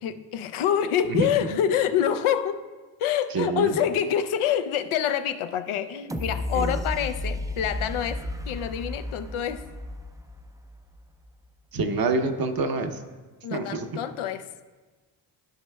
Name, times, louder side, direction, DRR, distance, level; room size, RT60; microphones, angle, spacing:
voice 1, 0.0-2.6 3.0-9.7 13.4-14.5, left 9 dB, 80° left, 9 dB, 0.6 m, -26 dB
voice 2, 1.1-1.6 3.3-3.8 6.5-6.8 11.7-13.0 13.5-14.0, right 3 dB, 45° right, 6 dB, 0.8 m, -27 dB
sound 1, 6.1-11.0 11.4-11.5, left 1 dB, 10° right, 0.4 m, -33 dB
14.5 x 5.4 x 2.3 m, 1.3 s
cardioid pair, 85°, 49 cm